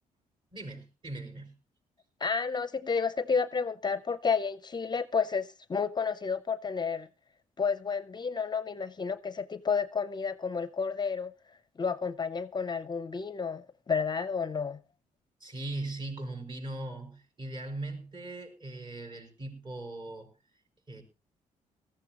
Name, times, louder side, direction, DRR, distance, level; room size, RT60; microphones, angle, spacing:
voice 1, 0.5-1.5 15.4-20.3 20.9-21.0, right 2 dB, 35° right, 5.9 m, -39 dB
voice 2, 2.2-7.1 7.6-11.3 11.8-14.8, left 5 dB, 30° left, 0.6 m, -31 dB
18.5 x 14.0 x 3.0 m
cardioid pair, 85°, 14 cm